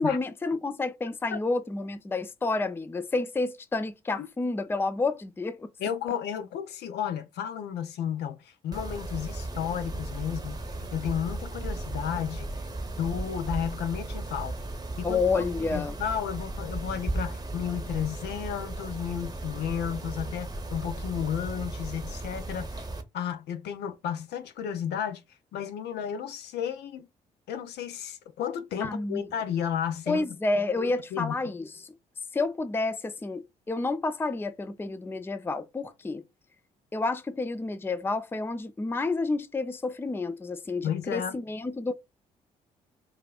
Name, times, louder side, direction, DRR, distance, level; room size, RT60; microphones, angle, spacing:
voice 1, 0.0-5.7 15.0-16.0 28.8-29.2 30.1-31.9 32.3-36.2 36.9-41.9, left 3 dB, 10° left, 0.4 m, -30 dB
voice 2, 5.8-10.6 10.9-12.5 13.0-14.6 15.0-15.4 15.7-22.9 23.1-25.2 25.5-27.1 27.5-30.3 30.8-31.5 40.8-41.3, left 9 dB, 65° left, 0.6 m, -33 dB
Mechanisms, 8.7-23.0, right 2 dB, 20° right, 0.9 m, -36 dB
4.7 x 2.4 x 2.4 m
hypercardioid pair, 45°, 19 cm